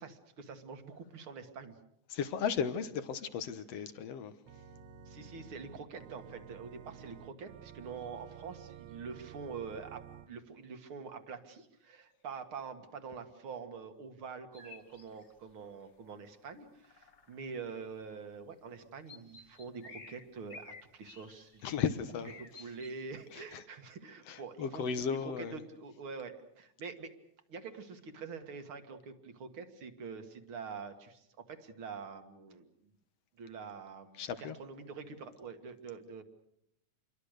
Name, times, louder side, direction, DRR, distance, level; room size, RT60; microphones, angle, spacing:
voice 1, 0.0-1.8 5.1-21.7 22.6-27.1 27.5-32.7 33.4-36.2, right 5 dB, 50° right, 2.4 m, -45 dB
voice 2, 2.1-4.3 21.6-22.3 23.3-23.6 24.3-25.6 34.2-34.6, left 7 dB, 60° left, 2.2 m, -35 dB
Organ, 4.5-10.3, right 8 dB, 75° right, 2.7 m, -51 dB
sound 1, 14.5-15.5 15.9-16.0 16.2-16.5 16.8-17.7 18.5-18.6 18.9-21.8 22.2-23.0, left 4 dB, 30° left, 1.5 m, -53 dB
28.0 x 22.5 x 6.6 m
omnidirectional pair, 3.4 m